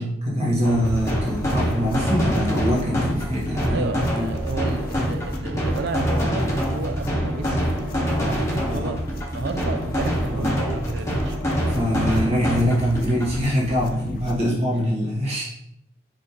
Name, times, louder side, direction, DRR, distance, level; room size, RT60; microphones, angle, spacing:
voice 1, 0.0-4.3 8.7-8.9 10.3-10.5 11.6-15.5, equal, 35° right, -6 dB, 1.0 m, -24 dB
sound 1, 0.6-13.4, equal, 15° left, 0.8 m, -25 dB
sound 2, 0.9-14.5, left 1 dB, 55° left, 0.4 m, -35 dB
voice 2, 3.7-11.4 14.4-14.5, right 3 dB, 65° right, 8 dB, 0.4 m, -32 dB
5.0 x 2.5 x 2.8 m, 0.78 s
head